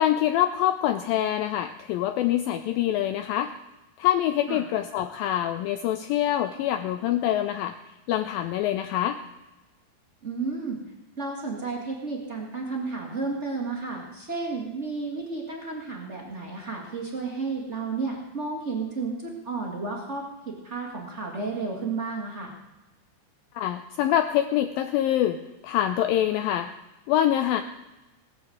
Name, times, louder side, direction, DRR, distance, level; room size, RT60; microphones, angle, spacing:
voice 1, 0.0-3.5 4.0-7.8 8.1-9.2 23.6-26.7 27.1-27.6, left 12 dB, 80° left, 9 dB, 2.1 m, -25 dB
voice 2, 10.2-10.8 11.2-22.5, right 4 dB, 65° right, -1 dB, 0.6 m, -32 dB
19.0 x 7.0 x 7.7 m, 1.0 s
omnidirectional pair, 4.7 m